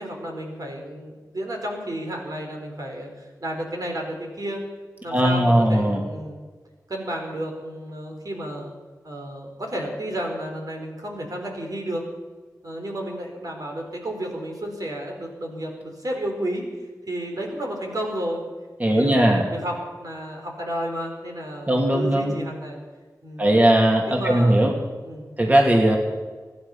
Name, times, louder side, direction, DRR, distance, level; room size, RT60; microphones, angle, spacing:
voice 1, 0.0-4.6 5.0-6.4 6.9-8.7 9.0-12.0 12.6-16.6 17.1-18.4 18.9-22.8 23.2-23.5 24.1-24.7 25.0-25.4, right 1 dB, 60° right, 1 dB, 4.3 m, -32 dB
voice 2, 5.1-6.0 18.8-19.5 21.7-22.4 23.4-24.7 25.4-26.0, right 1 dB, 20° right, 0 dB, 2.8 m, -18 dB
24.0 x 10.5 x 5.8 m, 1.4 s
cardioid pair, 45°, 7 cm